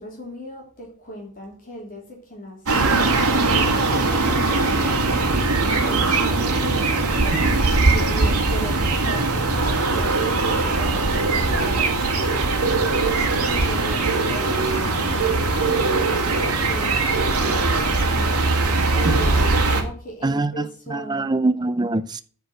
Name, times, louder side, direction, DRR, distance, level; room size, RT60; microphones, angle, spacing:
voice 1, 0.0-3.1 3.4-5.2 5.8-12.2 13.4-16.1 16.6-18.3 18.9-21.3, equal, 40° left, 3.0 m, -37 dB
sound 1, 2.7-19.8, right 3 dB, 85° right, 2.2 m, -20 dB
voice 2, 20.2-22.2, right 2 dB, 20° right, 0.5 m, -24 dB
9.7 x 4.6 x 7.7 m
head